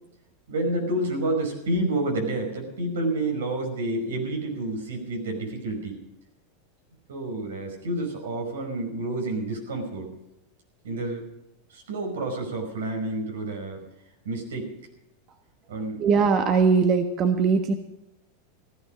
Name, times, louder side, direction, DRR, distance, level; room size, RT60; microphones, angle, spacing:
voice 1, 0.5-6.0 7.1-10.1 10.8-11.3 11.7-13.8 14.2-14.7 15.7-16.1, right 2 dB, 90° right, 2 dB, 5.2 m, -29 dB
voice 2, 16.0-17.7, right 5 dB, 40° right, 6 dB, 1.3 m, -20 dB
16.0 x 12.5 x 5.2 m, 0.89 s
hypercardioid pair, 120°, 0 cm